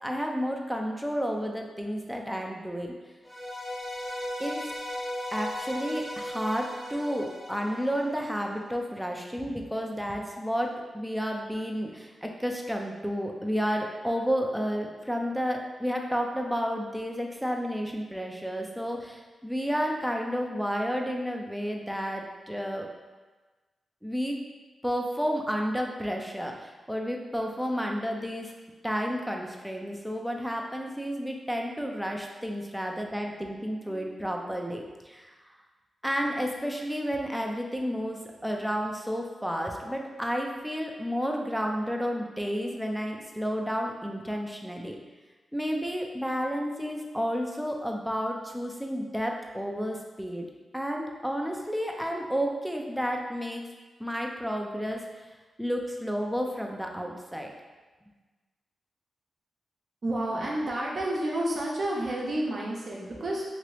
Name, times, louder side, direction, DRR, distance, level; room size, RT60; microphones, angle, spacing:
voice 1, 0.0-2.9 4.4-4.7 5.3-22.9 24.0-24.4 24.8-28.5 28.8-35.3 36.0-45.0 45.5-50.5 50.7-53.6 54.0-55.1 55.6-57.5, equal, 5° right, 1 dB, 0.5 m, -31 dB
sound 1, 3.2-8.5, left 1 dB, 35° left, 1.0 m, -37 dB
voice 2, 60.0-63.4, right 1 dB, 55° right, -3 dB, 0.8 m, -30 dB
3.0 x 2.8 x 3.2 m, 1.3 s
cardioid pair, 45°, 0 cm